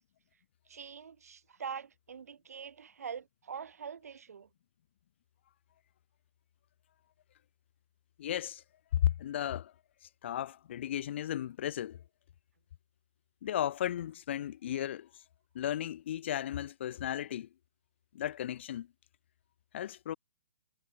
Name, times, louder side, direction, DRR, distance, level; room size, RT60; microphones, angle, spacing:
voice 1, 0.7-4.5, right 7 dB, 75° right, 4.8 m, -44 dB
voice 2, 8.2-8.6 9.0-9.7 10.2-12.0 13.4-15.1 15.5-17.5 18.1-18.9 19.7-20.1, left 11 dB, 45° left, 0.5 m, -34 dB
hypercardioid pair, 160°, 8 cm